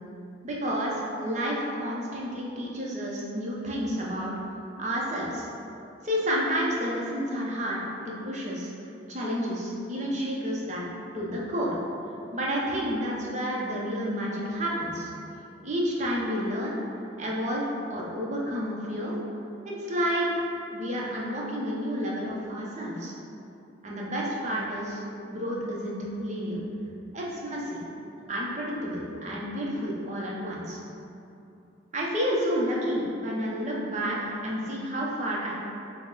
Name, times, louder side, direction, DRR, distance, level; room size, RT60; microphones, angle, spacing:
voice 1, 0.4-4.3 4.8-5.5 6.0-8.7 9.1-10.8 11.1-11.7 12.3-15.1 15.6-16.8 17.2-17.6 17.9-19.2 19.6-23.1 23.8-25.0 25.3-26.6 27.1-27.8 28.3-30.8 31.9-35.5, equal, 35° right, -4 dB, 0.6 m, -30 dB
5.9 x 2.1 x 3.8 m, 2.7 s
head